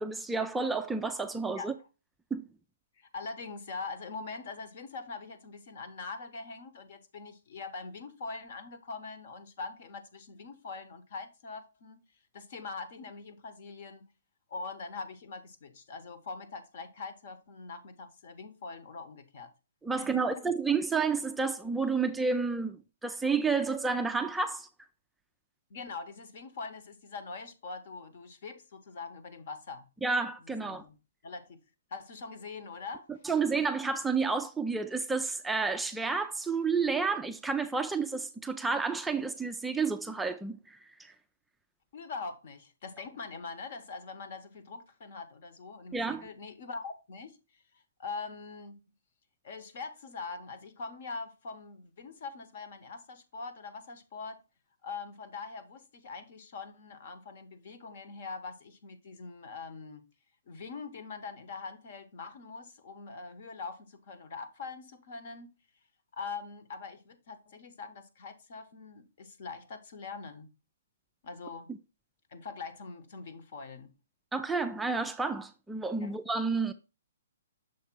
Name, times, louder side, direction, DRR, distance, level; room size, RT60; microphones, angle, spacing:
voice 1, 0.0-1.7 2.3-2.4 19.8-24.7 30.0-30.8 33.2-41.1 45.9-46.3 74.3-76.7, right 4 dB, 5° right, 0.3 m, -30 dB
voice 2, 3.0-12.0 12.3-14.1 14.5-19.5 19.9-20.5 25.7-29.9 30.4-31.0 31.2-31.6 31.9-33.1 41.9-47.6 48.0-48.8 49.4-54.4 54.8-60.0 60.5-65.5 66.1-70.5 71.2-71.7 72.3-73.9 76.0-76.2, left 4 dB, 55° left, 1.1 m, -43 dB
6.5 x 3.3 x 4.4 m
hypercardioid pair, 145°, 0 cm